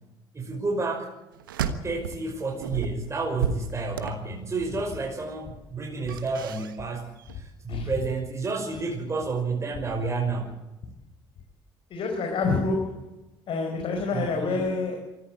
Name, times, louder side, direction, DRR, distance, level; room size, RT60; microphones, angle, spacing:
voice 1, 0.3-1.1 1.8-10.5 14.1-14.7, right 3 dB, 25° right, 0 dB, 5.6 m, -30 dB
sound 1, 1.4-2.3 2.6-4.7 6.0-6.9 7.2-7.4, right 7 dB, 90° right, 1.3 m, -32 dB
voice 2, 11.9-13.0 13.5-15.0, left 3 dB, 55° left, 2 dB, 4.7 m, -27 dB
24.0 x 15.0 x 8.4 m, 0.98 s
hypercardioid pair, 65°, 11 cm